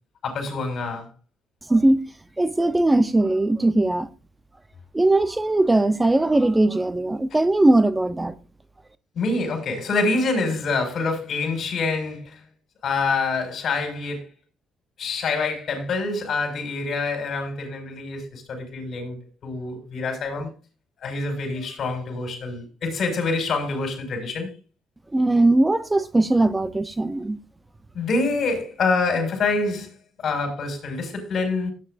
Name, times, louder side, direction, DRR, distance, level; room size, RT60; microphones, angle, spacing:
voice 1, 0.2-1.1 9.1-12.4 12.8-14.3 15.0-20.5 21.0-24.5 27.9-29.9 30.2-31.7, left 3 dB, 60° left, 6.3 m, -26 dB
voice 2, 1.7-2.0 2.4-4.1 4.9-8.4 25.1-27.4, right 2 dB, 15° right, 0.9 m, -19 dB
16.5 x 9.7 x 2.7 m
cardioid pair, 90°, 0 cm